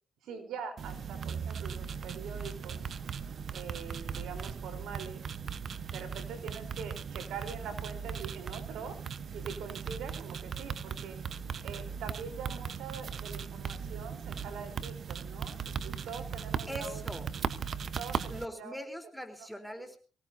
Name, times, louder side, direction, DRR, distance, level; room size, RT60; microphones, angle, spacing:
voice 1, 0.2-2.8 3.5-5.2 5.9-9.0 9.3-11.2 11.6-17.0 18.0-18.8 19.4-19.5 19.8-19.9, right 6 dB, 80° right, 6 dB, 3.8 m, -43 dB
sound 1, 0.8-18.4, right 6 dB, 55° right, 1.0 m, -38 dB
voice 2, 16.7-17.2 18.3-20.0, equal, ahead, 6 dB, 3.8 m, -41 dB
24.5 x 17.5 x 2.8 m, 0.37 s
cardioid pair, 90°, 0 cm